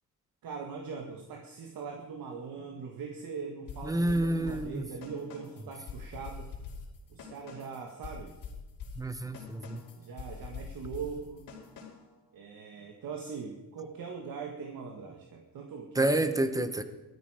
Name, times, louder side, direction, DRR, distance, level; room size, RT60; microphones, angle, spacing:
voice 1, 0.4-6.5 7.1-8.3 9.9-11.5 12.3-16.1, right 5 dB, 65° right, 2 dB, 1.8 m, -41 dB
sound 1, 3.7-12.2, left 5 dB, 65° left, 4.8 m, -45 dB
voice 2, 3.8-4.8 9.0-9.8 16.0-16.8, right 1 dB, 10° right, 10 dB, 1.1 m, -28 dB
18.0 x 13.5 x 5.0 m, 1.1 s
cardioid pair, 125°, 37 cm